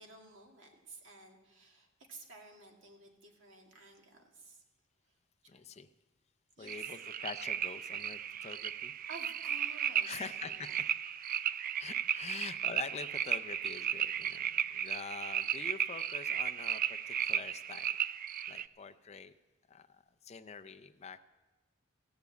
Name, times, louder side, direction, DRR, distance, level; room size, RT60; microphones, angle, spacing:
voice 1, 0.0-4.6 5.5-5.6 6.6-6.9 9.1-10.8 11.3-11.8 12.3-12.4, right 3 dB, 70° right, 1 dB, 2.2 m, -53 dB
voice 2, 5.5-5.9 6.6-8.9 10.0-10.7 11.8-17.9 18.5-19.3 19.7-21.2, left 5 dB, 35° left, 10 dB, 0.4 m, -45 dB
sound 1, 6.7-18.7, right 9 dB, 45° right, 0.4 m, -35 dB
16.0 x 7.0 x 8.2 m, 1.3 s
head